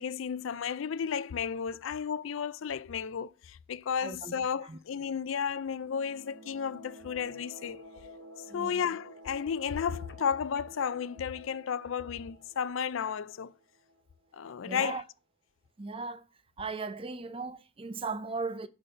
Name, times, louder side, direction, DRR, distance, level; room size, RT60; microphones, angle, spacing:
voice 1, 0.0-7.8 8.5-13.5 14.3-15.0, left 7 dB, 75° left, 0.4 m, -33 dB
voice 2, 4.0-4.3 4.6-4.8 8.5-8.8 14.7-15.0 15.8-16.2 16.6-18.7, right 4 dB, 25° right, 0.5 m, -37 dB
sound 1, 5.7-14.2, equal, 70° right, 2.5 m, -52 dB
Telephone, 9.7-10.8, left 4 dB, 60° left, 1.0 m, -52 dB
8.7 x 4.0 x 5.4 m
head